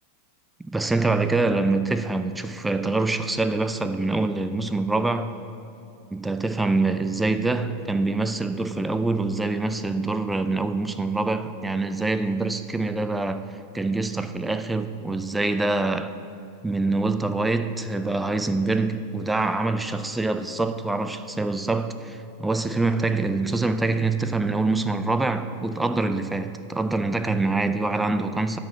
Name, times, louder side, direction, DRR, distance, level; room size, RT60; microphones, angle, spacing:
voice 1, 0.6-5.3 6.1-13.5 13.7-16.1 16.6-28.6, right 3 dB, 10° right, 0.4 m, -25 dB
10.0 x 4.3 x 7.3 m
hypercardioid pair, 115°, 0 cm